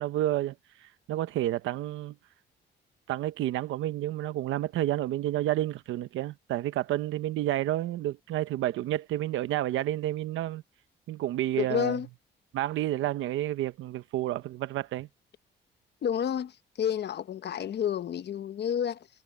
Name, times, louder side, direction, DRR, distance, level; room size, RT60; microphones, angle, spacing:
voice 1, 0.0-2.1 3.1-10.6 11.1-12.0 12.5-15.1, right 14 dB, 85° right, 0.9 m, -30 dB
voice 2, 11.6-12.1 16.0-19.1, left 9 dB, 60° left, 1.1 m, -30 dB
cardioid pair, 90°, 20 cm